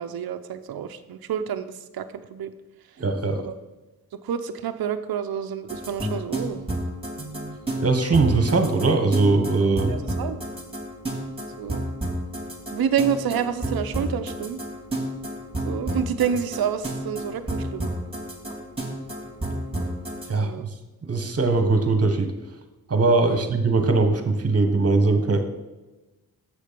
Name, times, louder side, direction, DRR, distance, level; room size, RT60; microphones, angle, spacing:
voice 1, 0.0-2.5 3.4-3.5 4.1-6.6 9.9-10.4 11.6-11.9 12.7-14.6 15.6-17.9 20.4-20.7 23.3-23.4, right 8 dB, 75° right, 9 dB, 0.7 m, -28 dB
voice 2, 3.0-3.4 7.2-7.6 7.8-10.0 20.3-20.7 21.0-22.3 22.9-25.4, right 3 dB, 40° right, 7 dB, 1.3 m, -21 dB
sound 1, 5.7-20.3, right 1 dB, 15° right, 2.4 m, -30 dB
7.7 x 6.5 x 5.2 m, 1.1 s
cardioid pair, 70°, 37 cm